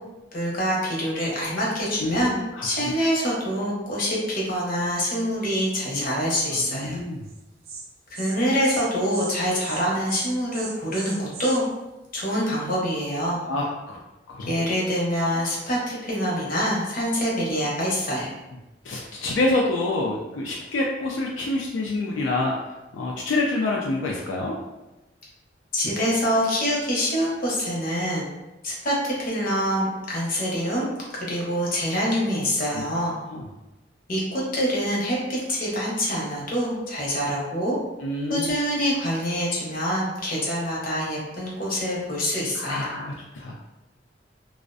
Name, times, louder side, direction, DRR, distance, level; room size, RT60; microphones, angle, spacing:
voice 1, 0.3-2.4 2.6-7.0 8.1-11.6 12.1-13.4 14.5-18.3 25.7-28.3 28.6-33.1 34.1-37.7 38.3-42.9, equal, 50° left, -4 dB, 0.7 m, -25 dB
voice 2, 2.0-2.9 5.9-6.0 6.5-7.3 13.5-14.0 14.3-14.5 18.8-22.5 22.9-24.6 32.3-32.4 32.7-32.8 33.3-33.5 38.0-38.6 42.5-43.5, left 2 dB, 80° left, -2 dB, 0.3 m, -27 dB
Insect, 7.3-7.4 7.6-7.8 8.1-8.4 8.6-8.8 9.1-9.3 9.6-9.8 10.1-11.6, right 5 dB, 55° right, 0.4 m, -37 dB
2.4 x 2.0 x 2.4 m, 1.0 s
head